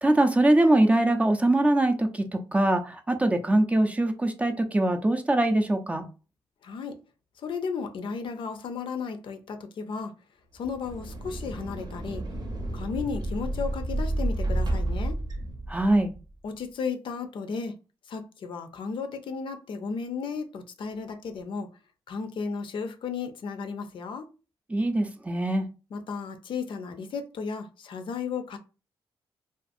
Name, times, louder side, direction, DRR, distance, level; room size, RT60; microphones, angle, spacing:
voice 1, 0.0-6.1 15.7-16.1 24.7-25.7, right 1 dB, 15° right, 0.4 m, -23 dB
voice 2, 6.6-7.0 7.4-10.1 10.5-12.2 12.7-15.2 16.4-17.8 18.1-21.7 22.1-24.3 25.9-28.6, left 5 dB, 65° left, 0.5 m, -34 dB
sound 1, 10.6-16.2, right 1 dB, 50° right, 0.7 m, -31 dB
2.5 x 2.4 x 2.5 m
cardioid pair, 85°, 9 cm